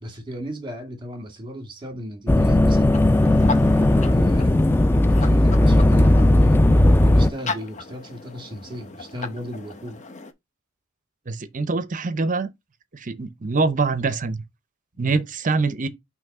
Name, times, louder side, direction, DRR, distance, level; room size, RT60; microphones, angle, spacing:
voice 1, 0.0-6.6 7.0-10.0 14.9-15.2, equal, 25° right, 1.9 m, -36 dB
sound 1, 2.3-7.3, left 1 dB, 10° left, 0.3 m, -16 dB
sound 2, 2.9-10.3, left 3 dB, 35° left, 0.8 m, -36 dB
voice 2, 11.3-12.5 12.9-14.4 15.0-15.9, right 4 dB, 40° right, 0.7 m, -24 dB
5.7 x 3.2 x 5.3 m
head